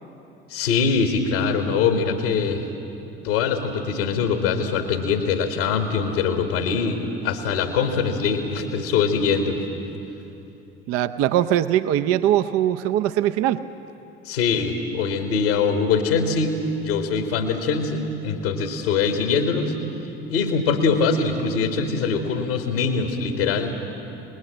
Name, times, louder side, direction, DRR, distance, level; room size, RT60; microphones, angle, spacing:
voice 1, 0.5-2.6 3.2-9.6 14.2-19.7 20.3-23.8, left 5 dB, 70° left, 6 dB, 1.7 m, -23 dB
voice 2, 10.9-13.6, right 12 dB, 50° right, 11 dB, 0.7 m, -21 dB
26.0 x 20.0 x 7.5 m, 2.9 s
figure-of-eight pair, 60°, 30 cm